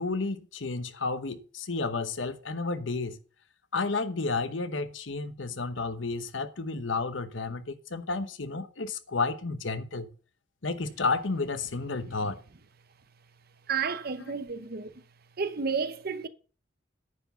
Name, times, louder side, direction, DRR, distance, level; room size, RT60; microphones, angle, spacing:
voice 1, 0.0-3.2 3.7-10.1 10.6-12.4, left 3 dB, 85° left, 1.0 m, -31 dB
voice 2, 13.7-14.9 15.4-16.3, right 5 dB, 55° right, 0.8 m, -31 dB
9.8 x 4.7 x 6.9 m
head